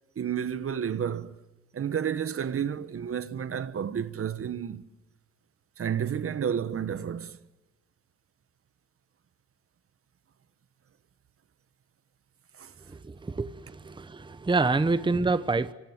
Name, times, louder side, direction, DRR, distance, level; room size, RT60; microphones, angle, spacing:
voice 1, 0.2-1.4 1.7-4.8 5.8-7.4 12.6-12.7, right 8 dB, 45° right, 1.4 m, -31 dB
voice 2, 13.0-15.7, right 3 dB, 15° right, 1.0 m, -27 dB
27.0 x 24.5 x 8.1 m
cardioid pair, 90°, 30 cm